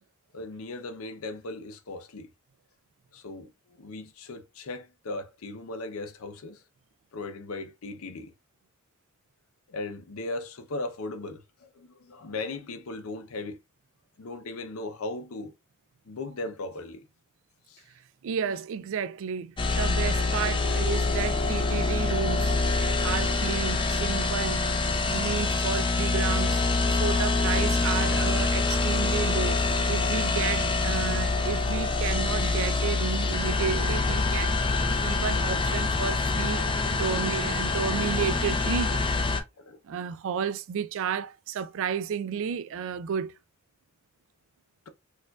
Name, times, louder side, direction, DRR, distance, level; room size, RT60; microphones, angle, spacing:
voice 1, 0.3-2.3 3.1-6.6 7.1-8.3 9.7-13.6 14.2-15.5 16.1-17.0 17.7-17.8 39.6-39.8, left 2 dB, 65° left, 0.6 m, -37 dB
voice 2, 18.2-22.6 23.0-24.7 25.0-26.6 26.9-29.6 29.9-36.6 36.9-39.0 39.8-43.3, right 7 dB, 60° right, 0.3 m, -32 dB
sound 1, 19.6-39.4, left 3 dB, 20° left, 0.4 m, -25 dB
4.4 x 2.4 x 2.3 m
head